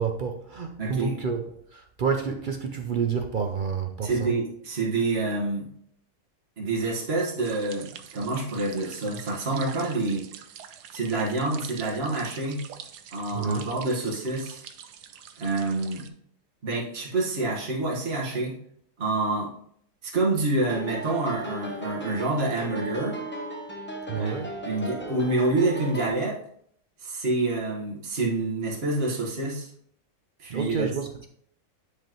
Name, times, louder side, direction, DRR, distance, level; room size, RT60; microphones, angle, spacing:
voice 1, 0.0-1.5 1.7-4.3 13.3-13.7 24.1-24.5 30.5-31.3, right 6 dB, 65° right, 5 dB, 0.5 m, -29 dB
voice 2, 0.8-1.1 4.0-5.7 6.6-10.3 10.9-12.6 13.1-14.6 15.4-16.1 16.6-18.6 19.0-19.5 20.0-23.2 24.1-24.4 24.6-26.4 27.0-29.7 30.4-30.9, right 2 dB, 40° right, -4 dB, 1.8 m, -27 dB
sound 1, 7.4-16.1, right 8 dB, 90° right, 1.3 m, -45 dB
sound 2, 20.6-26.1, right 1 dB, 10° left, 0.6 m, -36 dB
10.0 x 5.1 x 3.0 m, 0.66 s
omnidirectional pair, 1.7 m